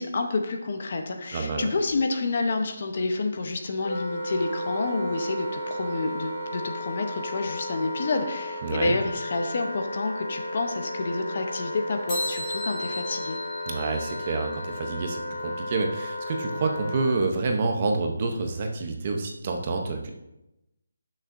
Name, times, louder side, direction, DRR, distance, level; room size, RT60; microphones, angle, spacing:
voice 1, 0.0-13.4, left 3 dB, 30° left, 5 dB, 0.7 m, -29 dB
voice 2, 1.3-1.7 8.6-8.9 13.7-20.1, right 3 dB, 20° right, 3 dB, 0.6 m, -28 dB
Wind instrument woodwind instrument, 3.8-17.2, left 1 dB, 50° left, 1.7 m, -34 dB
sound 1, 12.1-14.7, left 1 dB, 10° left, 2.5 m, -36 dB
15.0 x 6.4 x 2.6 m, 0.90 s
hypercardioid pair, 180°, 0 cm